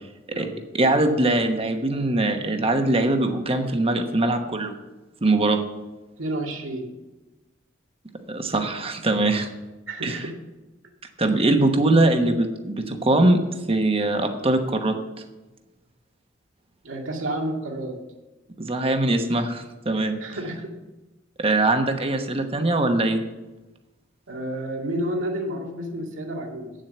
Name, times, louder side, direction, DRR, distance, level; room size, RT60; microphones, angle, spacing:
voice 1, 0.7-4.7 5.2-5.6 8.3-9.5 10.0-10.2 11.2-13.4 13.7-15.0 18.6-20.2 21.4-23.2, right 2 dB, 30° right, 5 dB, 1.1 m, -22 dB
voice 2, 6.2-6.9 9.9-10.3 16.8-18.0 20.2-20.7 24.3-26.7, right 1 dB, 85° right, 0 dB, 2.2 m, -30 dB
8.7 x 7.5 x 6.8 m, 1.1 s
head